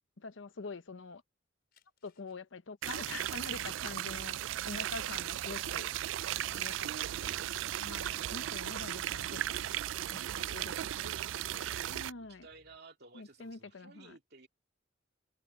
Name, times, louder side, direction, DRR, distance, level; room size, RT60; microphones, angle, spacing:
voice 1, 0.2-1.2 2.0-4.4 4.6-5.9 6.5-7.5 7.8-9.6 10.1-11.1 11.9-12.5 13.1-14.2, left 4 dB, 75° left, 0.9 m, -45 dB
sound 1, 1.6-8.2 8.7-12.6 13.0-13.7, left 9 dB, 55° left, 5.0 m, -73 dB
sound 2, 2.8-12.1, right 12 dB, 70° right, 0.3 m, -36 dB
voice 2, 6.9-7.5 11.0-14.5, right 3 dB, 55° right, 2.3 m, -56 dB
sound 3, 11.6-12.8, equal, 10° right, 2.9 m, -65 dB
head